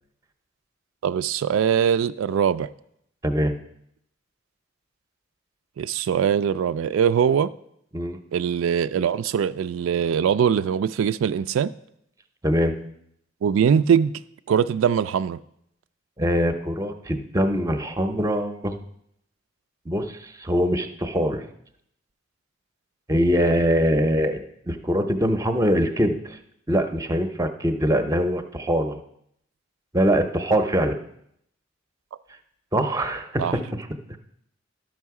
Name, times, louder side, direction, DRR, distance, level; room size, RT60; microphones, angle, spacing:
voice 1, 1.0-2.7 5.8-7.5 8.3-11.7 13.4-14.1 14.5-15.4 33.4-33.5, right 8 dB, 90° right, 13 dB, 0.3 m, -22 dB
voice 2, 3.2-3.5 7.9-8.2 12.4-12.7 16.2-18.8 19.9-21.4 23.1-24.4 24.7-26.4 26.7-29.0 29.9-31.0 32.7-34.2, equal, 15° right, 8 dB, 0.5 m, -23 dB
12.0 x 6.2 x 4.7 m, 0.74 s
head